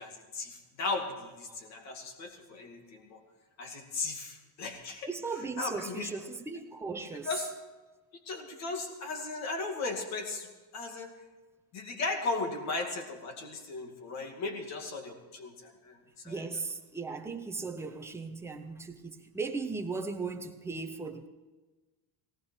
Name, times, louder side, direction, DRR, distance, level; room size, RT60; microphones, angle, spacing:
voice 1, 0.0-3.2 3.6-5.1 5.6-6.1 7.2-7.5 8.3-10.5 10.7-11.1 11.7-16.5, left 3 dB, 35° left, 2.3 m, -36 dB
voice 2, 5.1-7.3 16.2-21.3, right 4 dB, 5° right, 0.6 m, -37 dB
18.5 x 17.0 x 4.5 m
cardioid pair, 180°, 45 cm